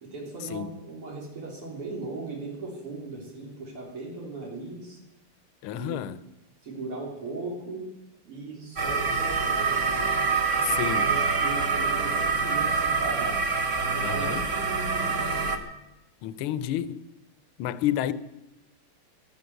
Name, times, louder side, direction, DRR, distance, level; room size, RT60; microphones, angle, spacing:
voice 1, 0.0-5.0 5.7-6.0 6.6-7.9 8.3-9.7 10.6-13.4 13.8-15.6, right 3 dB, 75° right, 4.1 m, -38 dB
voice 2, 5.6-6.2 10.6-11.1 14.0-14.4 16.2-17.0 17.6-18.1, left 12 dB, 75° left, 1.6 m, -30 dB
sound 1, 8.8-15.6, right 4 dB, 40° right, 1.4 m, -26 dB
13.5 x 12.5 x 7.9 m
omnidirectional pair, 2.4 m